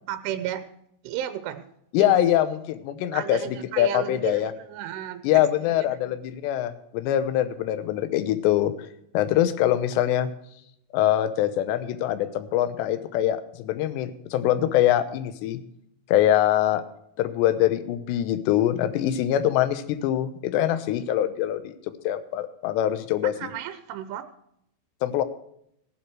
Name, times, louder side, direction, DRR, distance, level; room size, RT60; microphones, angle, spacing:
voice 1, 0.1-0.6 1.0-1.6 2.0-2.2 3.1-5.5 5.8-6.1 23.2-24.2, right 12 dB, 80° right, 10 dB, 3.2 m, -33 dB
voice 2, 1.9-4.5 5.2-8.7 9.1-10.3 10.9-15.6 16.1-16.8 17.2-21.7 22.0-23.5 25.0-25.2, left 12 dB, 75° left, 11 dB, 2.7 m, -23 dB
18.0 x 7.8 x 4.7 m, 0.73 s
omnidirectional pair, 5.9 m